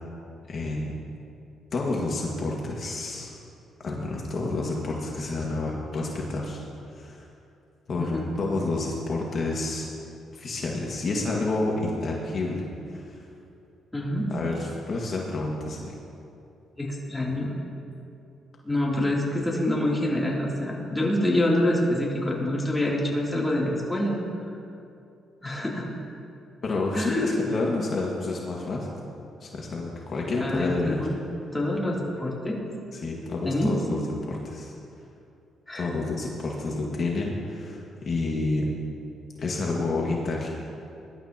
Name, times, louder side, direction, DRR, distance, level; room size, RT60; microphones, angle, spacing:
voice 1, 0.5-0.9 1.7-3.3 3.8-6.6 6.9-7.3 7.9-9.9 10.3-13.2 14.3-15.9 26.6-28.9 29.4-31.0 33.0-34.7 35.7-38.7 39.4-40.5, left 2 dB, 50° left, -2 dB, 1.8 m, -29 dB
voice 2, 8.0-8.3 13.9-14.3 16.8-17.6 18.6-24.5 25.4-25.9 26.9-27.3 30.4-31.2 31.5-32.6 33.4-33.7 35.7-35.9, left 1 dB, 10° left, -4 dB, 3.0 m, -26 dB
21.5 x 12.0 x 2.9 m, 2.6 s
cardioid pair, 90°, 0 cm